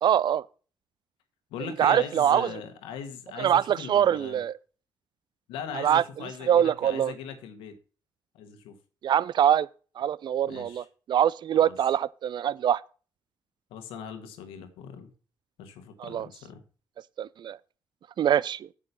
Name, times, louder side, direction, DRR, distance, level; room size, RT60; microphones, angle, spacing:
voice 1, 0.0-0.4 1.8-2.5 3.4-4.6 5.7-7.1 9.0-9.7 10.0-12.8 16.0-16.3 17.2-17.6 18.2-18.7, right 10 dB, 50° right, 0.4 m, -24 dB
voice 2, 1.5-4.4 5.5-7.7 8.3-8.8 10.5-10.9 11.6-11.8 13.7-15.1 15.6-16.6, left 7 dB, 75° left, 1.5 m, -40 dB
8.7 x 6.4 x 5.6 m
hypercardioid pair, 45°, 10 cm